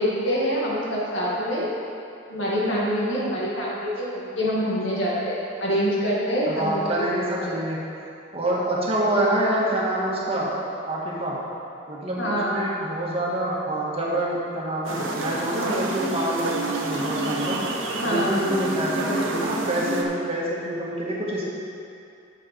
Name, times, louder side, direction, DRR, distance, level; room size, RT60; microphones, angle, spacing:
voice 1, 0.0-1.8 2.3-6.8 7.1-7.5 12.2-12.6 17.9-18.4, equal, 70° left, -6 dB, 2.1 m, -25 dB
voice 2, 6.5-7.8 8.3-10.5 10.9-11.4 11.9-17.6 18.0-21.4, right 1 dB, 30° right, -5 dB, 1.8 m, -26 dB
sound 1, 14.8-20.0, right 2 dB, 80° right, 1.0 m, -28 dB
9.9 x 7.1 x 4.5 m, 2.7 s
head